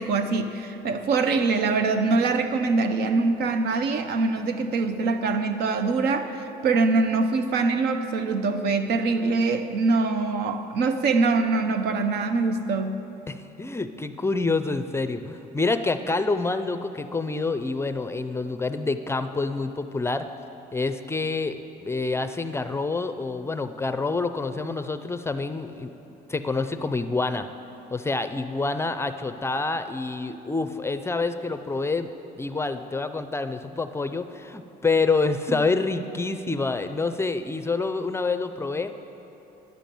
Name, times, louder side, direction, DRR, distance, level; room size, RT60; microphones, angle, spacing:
voice 1, 0.0-13.0 35.5-35.6, right 3 dB, 75° right, 8 dB, 0.8 m, -24 dB
voice 2, 13.3-20.3 20.7-25.9 26.3-27.5 27.9-32.1 32.4-38.9, left 3 dB, 15° left, 10 dB, 0.5 m, -27 dB
10.5 x 7.0 x 9.1 m, 2.9 s
cardioid pair, 110°, 17 cm